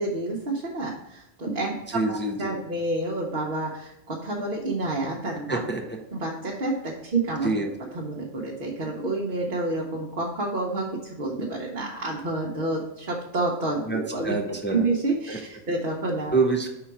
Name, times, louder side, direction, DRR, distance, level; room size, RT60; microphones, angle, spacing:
voice 1, 0.0-5.6 6.1-7.5 7.9-14.4 14.7-16.3, right 2 dB, 50° right, -3 dB, 1.0 m, -29 dB
voice 2, 1.9-2.6 5.5-6.0 7.4-7.7 13.9-14.9 15.3-15.4 16.3-16.7, right 3 dB, 15° left, 2 dB, 0.4 m, -26 dB
5.7 x 3.9 x 4.7 m, 0.94 s
omnidirectional pair, 1.2 m